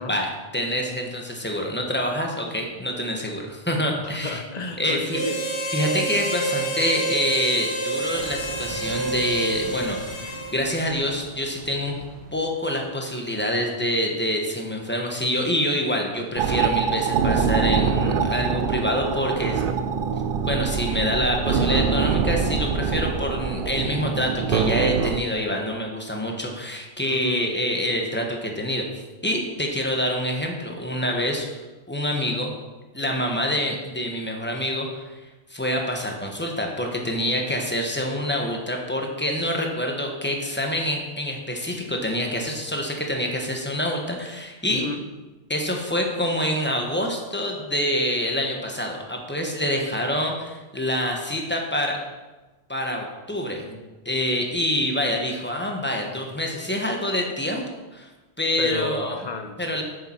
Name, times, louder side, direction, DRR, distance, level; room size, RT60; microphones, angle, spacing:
voice 1, 0.1-4.4 4.8-5.2 5.7-12.0 12.3-19.6 20.4-28.9 29.2-31.6 31.9-32.5 32.9-35.1 35.5-44.8 45.5-52.0 52.7-53.8 54.0-57.6 57.9-58.1 58.4-59.2 59.6-59.8, equal, 10° left, 1 dB, 1.1 m, -26 dB
voice 2, 4.0-5.5 27.1-27.6 44.7-45.0 58.6-59.8, left 3 dB, 45° left, 5 dB, 0.9 m, -33 dB
Harmonica, 5.1-10.7, right 2 dB, 90° left, 1.6 m, -28 dB
sound 1, 8.0-13.0, right 2 dB, 80° right, 1.5 m, -41 dB
sound 2, 16.4-25.2, right 6 dB, 60° right, 0.7 m, -24 dB
7.8 x 6.8 x 4.4 m, 1.2 s
omnidirectional pair, 1.1 m